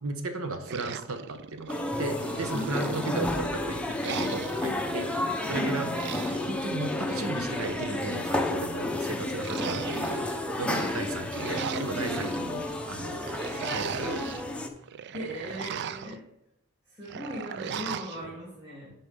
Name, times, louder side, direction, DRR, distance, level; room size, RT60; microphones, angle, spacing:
voice 1, 0.0-5.1 5.5-5.9 6.5-10.2 10.6-13.3 13.5-14.2 15.7-15.8 18.2-18.3, right 3 dB, 70° right, 7 dB, 0.9 m, -35 dB
sound 1, 0.7-1.8 2.2-3.4 4.0-4.7 5.8-6.5 7.3-8.3 9.4-10.4 11.1-12.3 13.2-14.4 14.8-16.2 17.1-18.2, right 8 dB, 50° right, 0.3 m, -38 dB
sound 2, 1.7-14.7, left 1 dB, 5° left, 0.6 m, -31 dB
voice 2, 2.5-2.9 5.5-5.7 10.6-10.9 12.1-12.3 15.1-16.2 17.0-18.9, equal, 20° right, -9 dB, 2.7 m, -37 dB
9.7 x 4.3 x 5.3 m, 0.86 s
head